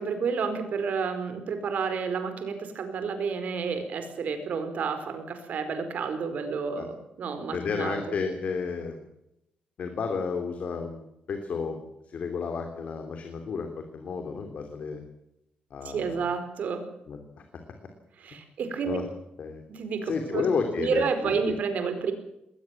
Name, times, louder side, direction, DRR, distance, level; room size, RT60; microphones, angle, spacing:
voice 1, 0.0-8.2 15.8-16.9 18.2-19.0 19.7-20.4 20.8-22.1, right 5 dB, 60° right, 8 dB, 4.7 m, -30 dB
voice 2, 7.5-9.1 9.8-15.0 15.7-16.3 17.1-17.2 18.8-19.1 19.4-19.6 20.0-21.5, left 5 dB, 55° left, 5 dB, 3.1 m, -32 dB
21.0 x 19.0 x 7.3 m, 0.83 s
wide cardioid pair, 160°, 3 cm